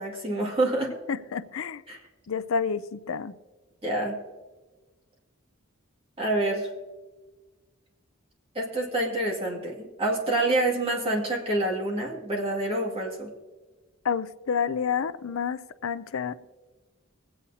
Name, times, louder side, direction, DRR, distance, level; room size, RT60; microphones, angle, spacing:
voice 1, 0.0-1.0 1.9-2.0 3.8-4.2 6.2-6.7 8.5-13.3, right 2 dB, 25° right, 2.1 m, -27 dB
voice 2, 1.1-1.8 2.3-3.3 14.0-16.5, left 6 dB, 75° left, 0.5 m, -29 dB
23.5 x 8.6 x 2.8 m
head